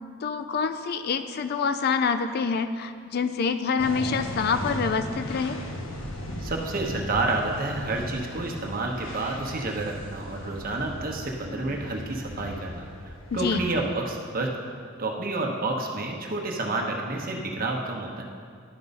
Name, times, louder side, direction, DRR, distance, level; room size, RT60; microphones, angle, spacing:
voice 1, 0.2-5.6 13.4-13.6, left 5 dB, 50° left, 9 dB, 0.4 m, -26 dB
sound 1, 3.8-13.7, left 1 dB, 85° left, 1.2 m, -37 dB
voice 2, 6.4-14.5 15.0-18.2, right 2 dB, 45° right, 0 dB, 1.0 m, -29 dB
11.5 x 4.6 x 5.4 m, 2.1 s
head